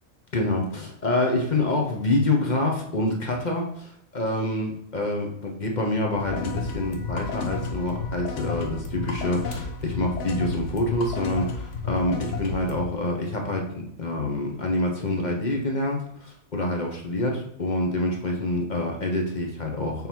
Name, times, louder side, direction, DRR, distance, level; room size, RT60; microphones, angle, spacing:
voice 1, 0.3-20.1, left 2 dB, 35° left, 1 dB, 0.9 m, -26 dB
sound 1, 6.2-12.8, left 4 dB, 60° left, 1.2 m, -32 dB
5.4 x 3.9 x 4.5 m, 0.72 s
omnidirectional pair, 1.5 m